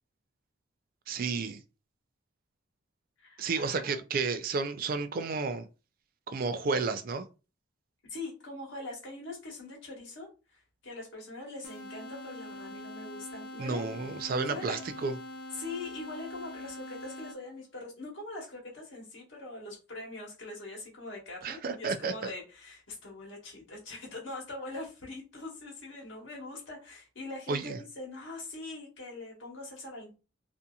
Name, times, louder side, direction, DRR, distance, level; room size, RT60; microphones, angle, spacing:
voice 1, 1.1-1.6 3.4-5.7 6.3-7.3 13.6-15.2 21.4-22.3 27.5-27.8, right 4 dB, 45° right, 0.3 m, -32 dB
voice 2, 3.2-4.0 8.1-13.9 14.5-14.8 15.5-30.2, left 2 dB, 75° left, 1.2 m, -42 dB
sound 1, 11.6-17.7, left 1 dB, 50° left, 0.4 m, -44 dB
2.7 x 2.5 x 2.3 m
head